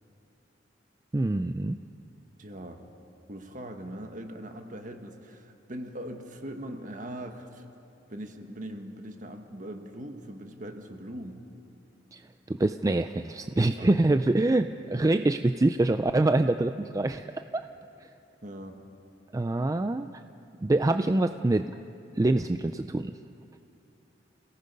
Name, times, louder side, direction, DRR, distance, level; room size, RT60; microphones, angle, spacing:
voice 1, 1.1-1.8 12.1-12.2 12.5-17.3 17.5-17.6 19.3-20.1 20.6-21.7 22.1-23.1, right 2 dB, 20° right, 9 dB, 0.4 m, -25 dB
voice 2, 2.4-2.8 3.3-7.6 8.1-11.4 13.8-14.2 18.4-18.8, right 1 dB, 45° right, 5 dB, 1.6 m, -41 dB
28.5 x 18.0 x 5.4 m, 2.8 s
head